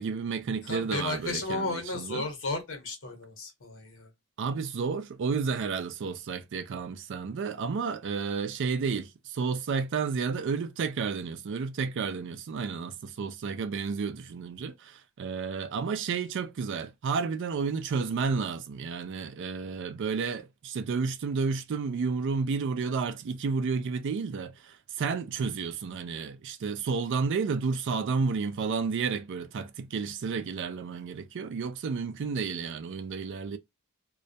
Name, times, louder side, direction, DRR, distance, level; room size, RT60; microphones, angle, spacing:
voice 1, 0.0-2.2 4.4-33.6, right 5 dB, 60° right, 0.4 m, -31 dB
voice 2, 0.6-4.1, left 3 dB, 65° left, 1.0 m, -34 dB
2.3 x 2.0 x 2.6 m
head